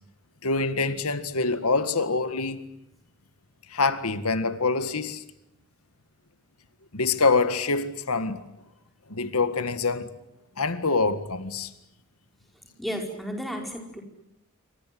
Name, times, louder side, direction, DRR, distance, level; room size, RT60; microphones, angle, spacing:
voice 1, 0.4-2.6 3.7-5.2 6.9-8.4 9.1-10.1 10.6-11.7, left 3 dB, 85° left, 1.9 m, -25 dB
voice 2, 12.8-14.0, equal, ahead, 5.0 m, -33 dB
28.0 x 25.5 x 7.8 m
head